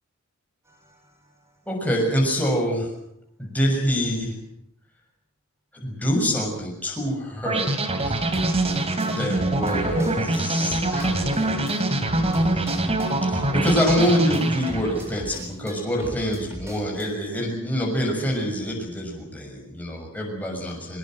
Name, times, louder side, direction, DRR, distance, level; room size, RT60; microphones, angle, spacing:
sound 1, 0.7-0.9 8.0-10.4 10.7-17.1, equal, 15° right, 6.6 m, -38 dB
voice 1, 1.7-2.9 3.4-4.3 5.7-7.8 8.0-8.2 9.0-12.9 13.2-21.0, equal, 5° left, -1 dB, 6.8 m, -26 dB
sound 2, 7.5-15.1, right 2 dB, 30° right, 3.0 m, -24 dB
23.0 x 22.0 x 7.8 m, 0.75 s
head